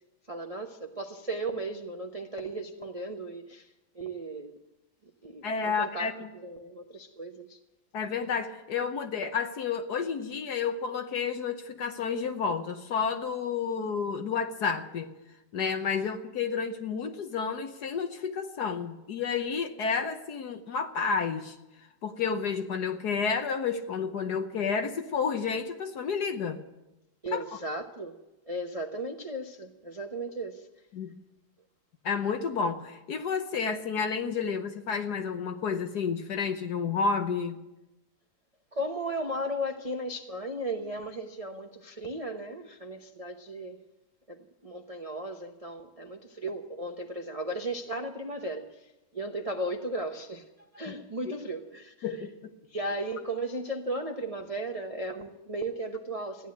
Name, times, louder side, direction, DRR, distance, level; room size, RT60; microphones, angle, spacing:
voice 1, 0.3-4.6 5.2-7.6 27.2-28.2 28.5-30.7 38.7-43.8 44.3-50.4 50.7-52.1 52.7-56.5, right 1 dB, 55° right, 3 dB, 0.4 m, -36 dB
voice 2, 5.4-6.3 7.9-15.1 15.5-21.6 22.0-26.6 27.3-27.4 30.9-31.1 32.0-37.6 52.0-52.5, left 5 dB, 60° left, 7 dB, 1.2 m, -30 dB
15.0 x 10.5 x 8.4 m, 0.97 s
omnidirectional pair, 2.4 m